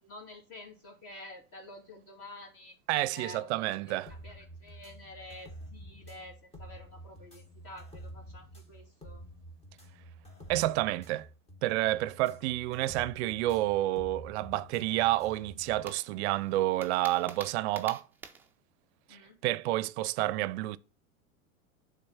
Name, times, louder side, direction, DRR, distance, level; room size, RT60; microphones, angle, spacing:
voice 1, 0.0-2.7 3.1-9.2 19.1-19.4, left 1 dB, 35° left, 2.7 m, -49 dB
voice 2, 2.9-4.1 10.5-11.3 11.6-18.0 19.1-20.8, right 16 dB, 55° right, 0.5 m, -29 dB
sound 1, 4.1-15.9, right 1 dB, 15° left, 1.2 m, -49 dB
sound 2, 15.9-18.5, right 5 dB, 5° right, 0.4 m, -47 dB
8.7 x 3.7 x 5.7 m
hypercardioid pair, 120°, 40 cm